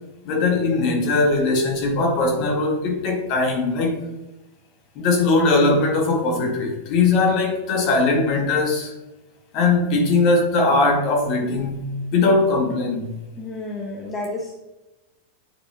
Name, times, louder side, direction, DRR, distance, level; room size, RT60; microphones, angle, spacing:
voice 1, 0.2-4.0 4.9-8.9 9.5-13.1, left 3 dB, 40° left, 1.7 m, -20 dB
voice 2, 13.4-14.5, left 2 dB, 20° left, 1.1 m, -30 dB
9.4 x 4.9 x 2.8 m
figure-of-eight pair, 90°, 0 cm